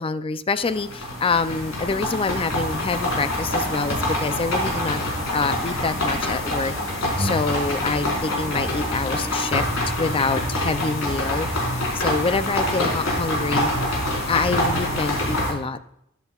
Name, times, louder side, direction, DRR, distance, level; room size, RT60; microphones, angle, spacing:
voice 1, 0.0-5.0 5.3-9.7 10.0-11.5 11.9-13.7 14.3-15.8, left 4 dB, 25° left, 13 dB, 0.4 m, -26 dB
sound 1, 0.6-15.5, left 1 dB, 80° left, 4.5 m, -25 dB
13.5 x 11.0 x 2.3 m, 0.77 s
head